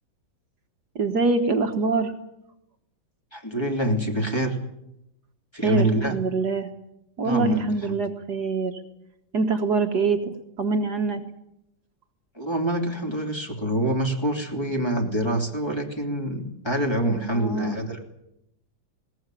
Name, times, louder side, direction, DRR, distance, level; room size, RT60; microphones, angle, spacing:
voice 1, 1.0-2.1 5.6-6.7 7.2-8.8 9.3-11.2 17.3-17.8, right 4 dB, 55° right, 5 dB, 1.8 m, -24 dB
voice 2, 3.3-4.6 5.5-6.1 7.2-7.6 7.9-8.0 12.3-18.0, right 1 dB, 15° left, 1 dB, 3.0 m, -26 dB
20.5 x 18.5 x 9.1 m, 0.84 s
omnidirectional pair, 2.1 m